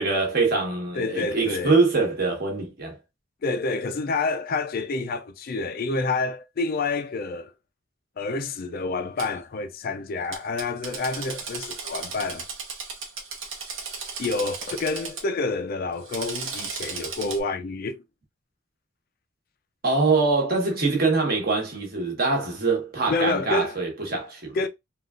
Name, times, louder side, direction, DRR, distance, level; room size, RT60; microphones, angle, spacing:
voice 1, 0.0-3.0 19.8-24.6, right 3 dB, 50° right, 1.1 m, -24 dB
voice 2, 0.9-1.8 3.4-7.5 8.2-12.5 14.2-18.0 23.1-23.8 24.5-24.7, left 3 dB, 45° left, 0.4 m, -28 dB
Drill, 9.2-9.3 10.3-15.2 15.9-17.4, right 5 dB, 75° right, 0.9 m, -35 dB
3.7 x 2.4 x 2.4 m
head